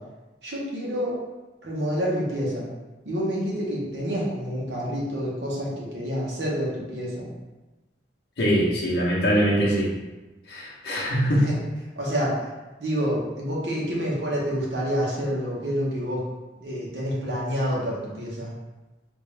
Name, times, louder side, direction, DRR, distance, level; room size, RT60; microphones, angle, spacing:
voice 1, 0.4-1.2 1.6-2.7 3.0-7.3 11.3-11.6 12.0-12.5 12.8-16.2 16.6-18.5, equal, 80° right, -5 dB, 1.0 m, -28 dB
voice 2, 8.4-9.9 10.5-11.5, equal, 65° left, -5 dB, 0.8 m, -22 dB
3.5 x 2.6 x 3.3 m, 1.1 s
head